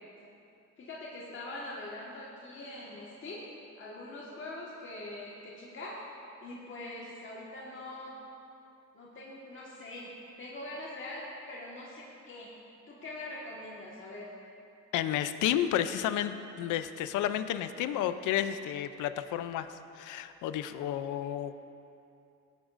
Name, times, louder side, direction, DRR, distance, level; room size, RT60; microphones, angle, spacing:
voice 1, 0.8-3.4 3.8-6.1 6.4-8.1 8.9-12.5 12.9-14.3, left 2 dB, 40° left, -5 dB, 1.6 m, -43 dB
voice 2, 14.9-21.5, left 11 dB, 85° left, 11 dB, 0.5 m, -31 dB
16.5 x 9.0 x 2.5 m, 2.7 s
cardioid pair, 90°, 30 cm